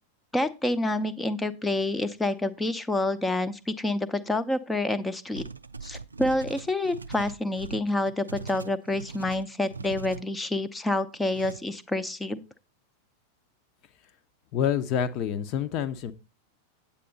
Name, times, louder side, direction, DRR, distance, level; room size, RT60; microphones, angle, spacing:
voice 1, 0.3-5.4 5.8-12.4, left 2 dB, 10° left, 12 dB, 0.7 m, -28 dB
sound 1, 5.3-10.2 11.3-11.6, right 4 dB, 80° right, 0.4 m, -40 dB
voice 2, 14.5-16.1, left 8 dB, 40° left, 12 dB, 0.9 m, -27 dB
8.7 x 8.5 x 3.9 m, 0.29 s
figure-of-eight pair, 90°, 0 cm